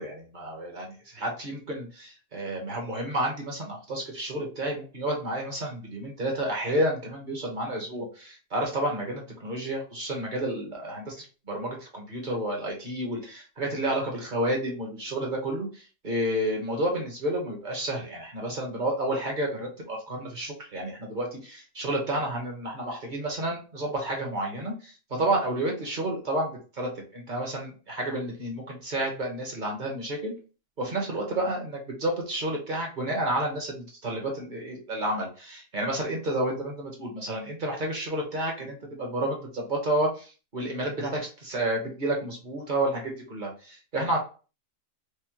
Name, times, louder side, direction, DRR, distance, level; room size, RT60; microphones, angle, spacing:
voice 1, 0.0-30.3 30.8-44.2, right 1 dB, 35° right, 0 dB, 1.0 m, -30 dB
4.9 x 2.1 x 2.9 m, 0.35 s
omnidirectional pair, 1.7 m